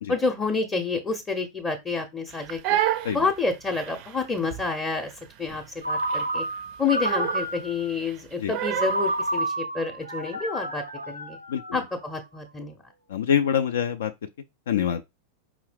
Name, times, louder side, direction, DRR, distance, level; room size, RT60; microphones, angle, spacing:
voice 1, 0.1-2.8 3.1-5.1 5.4-6.5 6.8-11.4 11.7-12.8, left 4 dB, 20° left, 0.6 m, -29 dB
Crying sobbing, 2.3-9.1, right 12 dB, 45° right, 0.4 m, -31 dB
Ringtone, 5.8-7.9 8.7-12.1, right 1 dB, 90° right, 0.6 m, -30 dB
voice 2, 13.1-14.1 14.7-15.0, left 8 dB, 60° left, 0.3 m, -25 dB
4.8 x 2.7 x 3.3 m
figure-of-eight pair, 90°, 0 cm